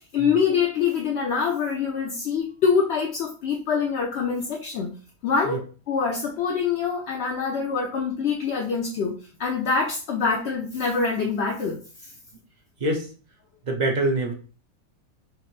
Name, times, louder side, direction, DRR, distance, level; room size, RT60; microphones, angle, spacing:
voice 1, 0.1-4.9 5.2-5.6 5.9-12.1, left 5 dB, 60° left, 0 dB, 0.7 m, -25 dB
voice 2, 13.6-14.3, right 2 dB, 40° right, 1 dB, 0.7 m, -25 dB
5.7 x 2.1 x 3.1 m, 0.37 s
omnidirectional pair, 1.6 m